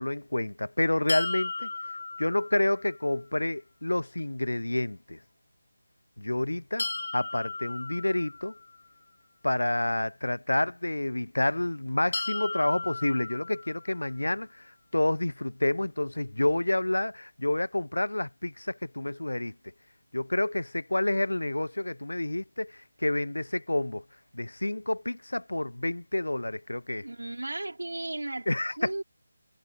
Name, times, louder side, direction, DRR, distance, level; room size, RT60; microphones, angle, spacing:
voice 1, 0.0-1.7 2.2-5.2 6.2-6.9 7.1-8.6 9.4-19.5 20.1-24.0 24.3-27.1 28.5-29.0, left 1 dB, 75° left, 1.0 m, -29 dB
sound 1, 1.1-3.0 6.8-8.9 12.1-14.2, left 3 dB, 50° left, 3.4 m, -36 dB
voice 2, 27.0-28.5 28.8-29.0, right 2 dB, 70° right, 3.5 m, -35 dB
figure-of-eight pair, 160°, 0 cm